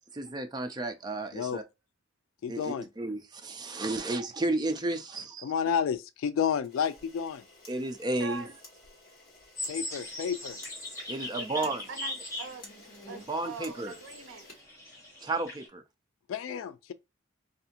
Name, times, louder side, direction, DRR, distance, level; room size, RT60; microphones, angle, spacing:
voice 1, 0.1-1.6 2.5-5.3 7.7-8.4 11.1-11.8 13.3-13.9 15.2-15.8, right 2 dB, 20° right, 0.4 m, -32 dB
voice 2, 2.4-2.9 5.4-7.4 9.7-10.6 16.3-16.9, left 7 dB, 90° left, 0.3 m, -31 dB
Camera, 6.6-15.3, left 2 dB, 50° left, 1.2 m, -53 dB
sound 1, 9.6-15.7, left 1 dB, 15° left, 1.3 m, -40 dB
voice 3, 11.4-12.7 13.1-14.5, right 4 dB, 70° right, 0.5 m, -42 dB
2.7 x 2.5 x 2.7 m
head